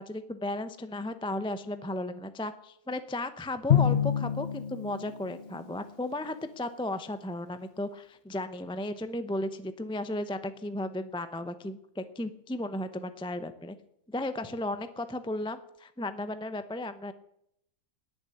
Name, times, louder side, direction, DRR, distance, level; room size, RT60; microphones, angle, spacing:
voice 1, 0.0-13.7 14.1-17.1, left 1 dB, 5° left, 10 dB, 0.5 m, -35 dB
Drum, 3.7-5.9, left 9 dB, 50° left, 0.9 m, -27 dB
19.0 x 7.1 x 9.9 m, 0.76 s
omnidirectional pair, 1.5 m